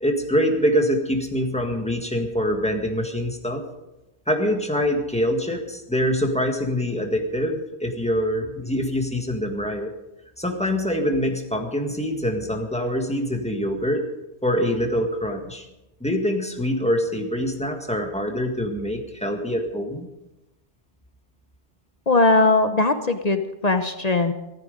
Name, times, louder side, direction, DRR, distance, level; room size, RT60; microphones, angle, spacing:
voice 1, 0.0-3.6 4.3-9.9 10.4-14.0 14.4-15.7 16.0-20.1, equal, 5° left, 3 dB, 1.7 m, -24 dB
voice 2, 22.1-24.3, left 3 dB, 40° left, 8 dB, 0.9 m, -19 dB
15.5 x 14.0 x 5.2 m, 0.98 s
omnidirectional pair, 1.1 m